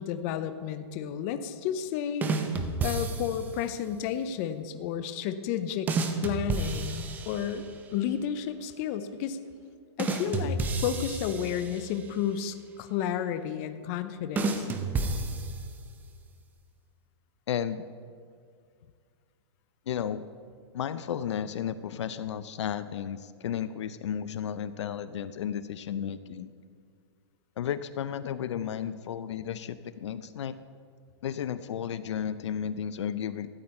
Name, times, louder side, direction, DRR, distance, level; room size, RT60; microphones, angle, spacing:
voice 1, 0.0-2.3 2.8-5.9 6.2-7.6 7.9-9.4 10.0-14.7, left 9 dB, 30° left, 10 dB, 0.6 m, -32 dB
sound 1, 2.2-3.6 5.9-7.8 10.0-12.1 14.4-16.0, right 3 dB, 10° right, 0.6 m, -31 dB
voice 2, 17.5-17.8 19.9-20.2 20.7-26.5 27.6-30.6 31.2-33.5, left 9 dB, 75° left, 14 dB, 0.5 m, -33 dB
13.5 x 8.8 x 4.3 m, 2.1 s
hypercardioid pair, 160°, 15 cm